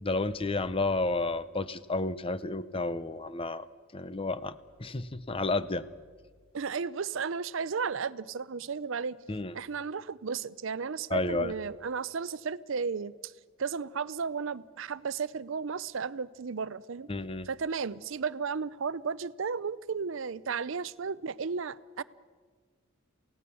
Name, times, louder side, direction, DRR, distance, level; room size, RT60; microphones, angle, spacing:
voice 1, 0.0-3.7 3.9-5.9 9.3-9.6 11.1-11.5 17.1-17.5, left 2 dB, 25° left, 0.7 m, -31 dB
voice 2, 6.5-9.2 9.5-13.3 13.6-17.1 17.5-22.0, right 5 dB, 60° right, 0.5 m, -34 dB
28.0 x 17.0 x 7.0 m
head